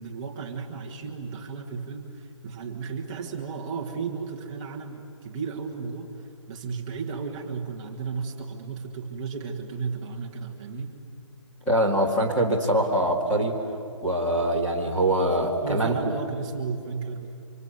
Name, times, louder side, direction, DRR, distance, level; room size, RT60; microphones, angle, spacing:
voice 1, 0.0-10.9 15.6-17.3, right 5 dB, 10° right, 0 dB, 1.2 m, -34 dB
voice 2, 11.7-13.6 14.0-15.9, right 1 dB, 5° left, -4 dB, 2.1 m, -23 dB
29.5 x 25.5 x 7.9 m, 2.5 s
hypercardioid pair, 175°, 16 cm